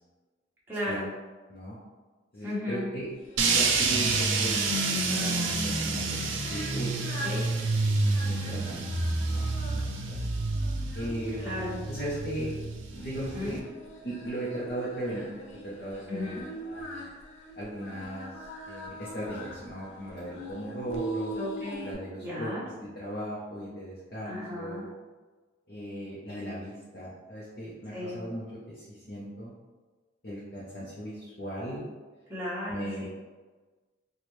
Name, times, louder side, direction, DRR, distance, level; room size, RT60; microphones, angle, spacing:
voice 1, 0.7-1.1 2.4-2.9 7.2-7.5 11.4-11.8 13.3-13.6 16.1-16.4 21.4-22.0 22.2-22.7 24.2-24.8 27.9-28.2 32.3-33.0, left 1 dB, 10° right, -9 dB, 1.1 m, -35 dB
voice 2, 2.3-3.1 3.5-6.2 6.5-7.4 8.2-8.8 9.2-10.2 10.9-11.4 11.8-12.5 12.9-13.6 14.0-17.0 17.6-21.4 21.8-24.8 25.7-29.5 30.2-31.9 32.7-33.0, right 1 dB, 50° left, -8 dB, 0.7 m, -37 dB
Singing, 3.2-21.9, right 1 dB, 90° left, 0.7 m, -43 dB
sound 1, 3.4-13.6, right 3 dB, 80° right, 0.5 m, -28 dB
4.3 x 2.3 x 3.2 m, 1.3 s
head